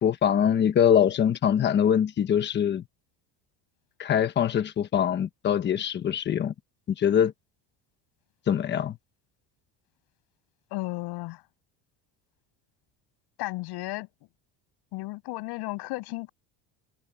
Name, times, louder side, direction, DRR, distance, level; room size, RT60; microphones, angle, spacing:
voice 1, 0.0-2.8 4.0-6.5 6.9-7.3 8.5-9.0, left 9 dB, 25° left, 1.1 m, -23 dB
voice 2, 10.7-11.4 13.4-14.1 14.9-16.3, left 21 dB, 65° left, 7.7 m, -34 dB
cardioid pair, 180°, 43 cm